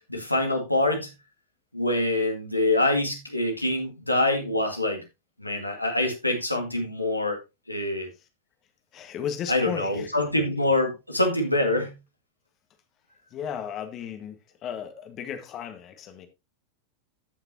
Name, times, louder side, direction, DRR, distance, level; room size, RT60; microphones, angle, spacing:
voice 1, 0.1-1.1 1.7-5.0 5.4-7.4 7.7-8.1 9.5-11.9, left 1 dB, 85° left, 1.9 m, -25 dB
voice 2, 8.9-10.1 13.3-16.3, left 8 dB, 30° left, 1.5 m, -35 dB
13.5 x 5.8 x 2.8 m
figure-of-eight pair, 90°, 0 cm